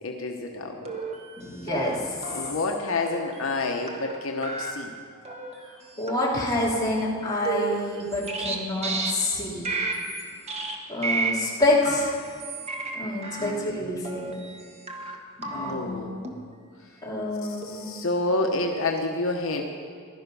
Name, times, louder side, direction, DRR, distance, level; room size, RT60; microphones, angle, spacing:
voice 1, 0.0-1.0 2.3-4.9 13.4-14.0 15.5-16.3 17.4-19.6, left 2 dB, 70° left, 2 dB, 1.0 m, -29 dB
sound 1, 0.9-1.4 1.7-2.0 2.2-2.5 3.1-3.6 3.9-4.2 4.4-4.7 5.3-5.5 6.0-6.4 6.6-6.9 7.5-8.6 8.8-9.1 9.6-10.2 10.5-10.8 11.0-11.3 11.8-13.0 13.2-13.5 14.0-14.6 14.9-15.2 15.4-15.7 16.2-16.3 17.1-17.3 17.6-17.9 18.4-18.9, right 3 dB, 30° right, 1.4 m, -32 dB
voice 2, 1.4-2.0 6.0-9.6 10.9-12.1 12.9-14.3 15.4-16.0 17.0-17.8, left 1 dB, 20° left, -6 dB, 3.0 m, -27 dB
16.0 x 12.0 x 5.4 m, 2.1 s
head